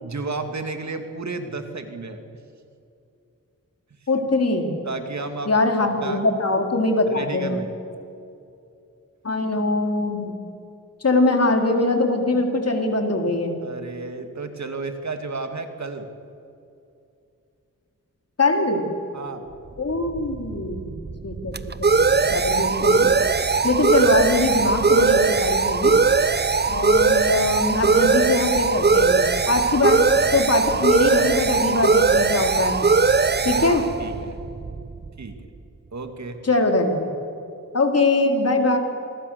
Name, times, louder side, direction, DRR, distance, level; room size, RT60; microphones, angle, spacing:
voice 1, 0.0-2.2 4.8-5.5 6.0-6.2 7.1-7.7 13.6-16.1 19.1-19.5 33.5-34.4 35.2-35.4 35.9-36.4, right 3 dB, 55° right, 6 dB, 2.5 m, -32 dB
voice 2, 4.1-4.7 5.5-7.6 9.2-10.3 11.0-13.6 18.4-18.8 19.8-20.9 21.2-23.1 23.6-26.0 26.7-30.0 30.3-32.8 33.4-33.8 36.4-37.1 37.7-38.8, left 2 dB, 50° left, 3 dB, 3.5 m, -22 dB
sound 1, 19.9-35.3, right 4 dB, 30° right, 0.8 m, -20 dB
27.5 x 22.0 x 6.9 m, 2.6 s
cardioid pair, 70°, 33 cm